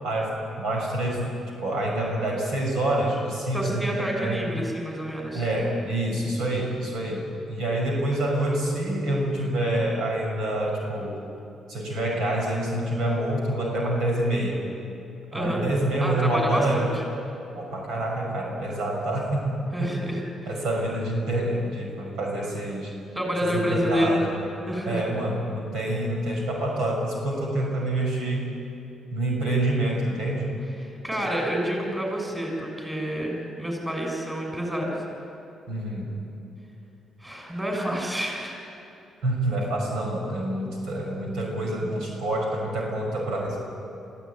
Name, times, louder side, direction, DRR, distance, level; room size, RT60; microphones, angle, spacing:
voice 1, 0.0-1.4 1.6-4.4 5.3-11.2 11.7-14.6 15.3-16.9 17.6-19.5 19.8-20.0 20.5-22.9 23.4-24.4 24.9-28.5 29.1-30.6 35.7-36.2 39.2-43.6, right 1 dB, 80° right, -1 dB, 5.8 m, -27 dB
voice 2, 3.5-5.4 15.3-15.6 16.0-16.9 19.7-20.5 23.1-24.2 24.7-25.0 30.8-35.0 37.2-38.6, equal, 10° right, 0 dB, 6.6 m, -28 dB
24.0 x 15.0 x 9.6 m, 2.9 s
cardioid pair, 90°, 0 cm